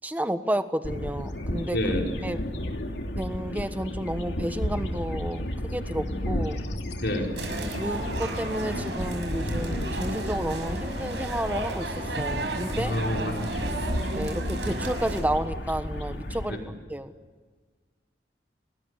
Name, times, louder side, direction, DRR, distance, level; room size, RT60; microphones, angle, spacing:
voice 1, 0.0-1.8 2.2-2.4 3.2-6.6 7.8-12.9 14.1-16.6 16.9-17.1, right 1 dB, 10° right, 9 dB, 1.3 m, -31 dB
sound 1, 0.8-16.5, left 1 dB, 85° left, 2.9 m, -33 dB
voice 2, 1.7-2.1 7.0-7.4 12.7-13.5 16.5-16.7, left 1 dB, 70° left, 1 dB, 5.1 m, -28 dB
sound 2, 7.4-15.2, right 2 dB, 90° right, 5.9 m, -33 dB
29.5 x 21.0 x 9.8 m, 1.5 s
head